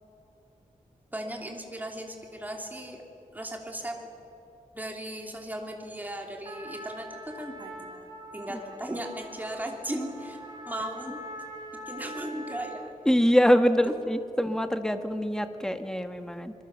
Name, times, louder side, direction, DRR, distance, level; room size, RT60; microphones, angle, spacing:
voice 1, 1.1-3.0 3.3-4.1 4.7-10.4 10.7-11.2 11.9-12.9 13.9-14.0, right 1 dB, 10° right, 2 dB, 3.0 m, -37 dB
Trumpet, 6.4-13.0, equal, 30° right, 3.7 m, -43 dB
voice 2, 13.0-16.5, equal, 5° left, 8 dB, 1.3 m, -24 dB
26.5 x 22.0 x 7.3 m, 2.9 s
wide cardioid pair, 160°, 14 cm